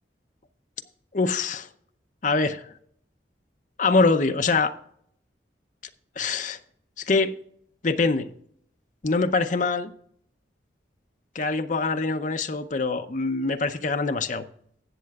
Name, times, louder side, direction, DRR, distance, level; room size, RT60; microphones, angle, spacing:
voice 1, 1.1-1.7 2.2-2.7 3.8-4.7 6.2-6.6 7.0-7.3 7.8-8.3 9.0-9.9 11.3-14.4, left 3 dB, 45° left, 0.6 m, -24 dB
19.0 x 7.6 x 2.4 m
head